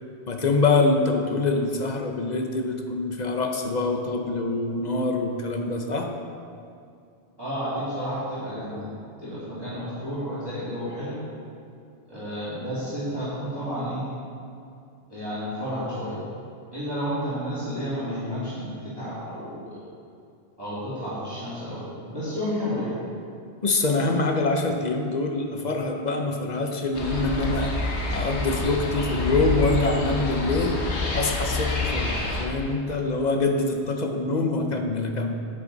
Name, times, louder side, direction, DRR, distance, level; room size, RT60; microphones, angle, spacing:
voice 1, 0.3-6.1 23.6-27.7 28.1-30.8 31.1-35.4, left 3 dB, 45° left, 3 dB, 0.9 m, -25 dB
voice 2, 7.4-8.9 9.2-11.2 12.1-14.1 15.1-16.2 16.7-19.8 20.6-23.0, equal, 20° right, -13 dB, 2.7 m, -31 dB
sound 1, 26.9-32.5, left 3 dB, 80° left, 1.4 m, -27 dB
9.8 x 8.7 x 4.0 m, 2.5 s
omnidirectional pair, 1.1 m